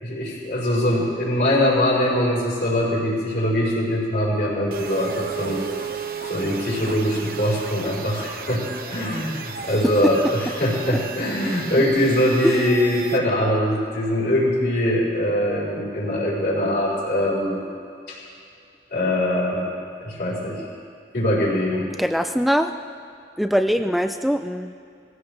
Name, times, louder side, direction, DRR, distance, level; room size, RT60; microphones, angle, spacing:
voice 1, 0.0-5.6 6.3-17.6 18.1-18.2 18.9-19.7 20.0-20.6 21.1-21.9, left 1 dB, 65° left, -5 dB, 4.3 m, -22 dB
sound 1, 4.7-13.2, right 6 dB, 55° right, 0.9 m, -34 dB
voice 2, 11.5-11.8 12.4-12.7 22.0-22.7 23.4-24.7, equal, ahead, 7 dB, 0.4 m, -22 dB
19.0 x 16.0 x 3.3 m, 2.4 s
head